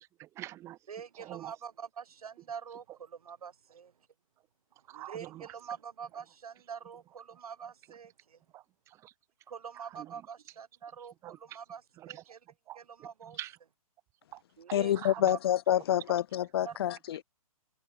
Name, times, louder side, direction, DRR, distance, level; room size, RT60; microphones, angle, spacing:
voice 1, 0.0-0.8 1.1-1.6 4.7-5.6 8.5-9.1 9.7-10.3 11.0-11.6 12.0-13.6 14.3-14.4 14.7-15.3, right 14 dB, 15° right, 0.9 m, -47 dB
voice 2, 0.9-3.9 4.9-8.4 9.5-12.4 12.8-13.4 14.6-14.9 15.3-15.4 16.6-16.8, right 7 dB, 85° right, 0.9 m, -45 dB
voice 3, 14.7-17.2, left 11 dB, 45° left, 0.6 m, -28 dB
hypercardioid pair, 155°, 18 cm